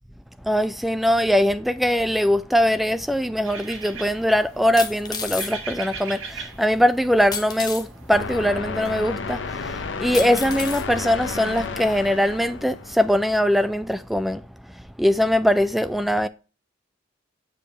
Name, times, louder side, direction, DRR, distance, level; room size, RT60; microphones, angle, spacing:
voice 1, 0.4-14.4 15.0-16.3, equal, ahead, 0.3 m, -21 dB
sound 1, 3.4-8.5, right 5 dB, 80° right, 1.6 m, -39 dB
sound 2, 3.5-3.6 4.8-5.5 7.3-7.9 8.8-8.9 10.1-10.9 11.6-11.7, left 5 dB, 20° left, 0.7 m, -31 dB
sound 3, 8.1-13.5, left 4 dB, 65° left, 0.7 m, -32 dB
6.8 x 5.1 x 3.1 m
head